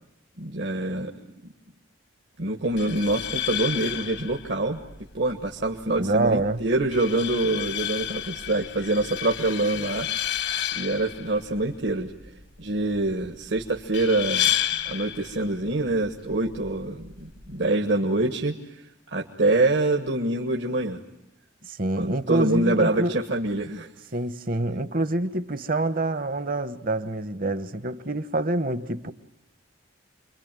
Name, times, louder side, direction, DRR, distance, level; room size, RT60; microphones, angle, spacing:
voice 1, 0.4-1.1 2.4-4.8 5.1-10.1 10.7-12.1 12.6-14.5 14.8-18.6 19.1-21.0 22.0-23.9, right 2 dB, 70° right, 1.6 m, -25 dB
sound 1, 2.7-17.7, left 10 dB, 70° left, 1.3 m, -32 dB
voice 2, 6.0-6.6 21.7-23.1 24.1-29.1, right 2 dB, 45° right, 1.1 m, -26 dB
28.5 x 23.0 x 9.1 m
head